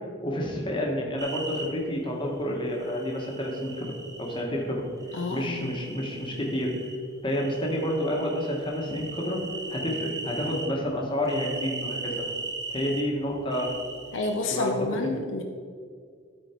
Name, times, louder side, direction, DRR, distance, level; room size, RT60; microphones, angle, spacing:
voice 1, 0.2-4.9 5.3-6.7 7.2-9.4 9.7-12.3 12.7-13.7 14.5-14.7, equal, 25° left, -1 dB, 1.3 m, -29 dB
sound 1, 1.2-1.7 2.8-4.4 5.0-7.0 7.3-10.7 11.2-13.0 13.5-14.3, right 3 dB, 15° right, 0.9 m, -38 dB
voice 2, 5.1-5.7 14.1-15.4, left 2 dB, 70° left, 3 dB, 0.7 m, -29 dB
12.0 x 4.4 x 4.4 m, 2.1 s
head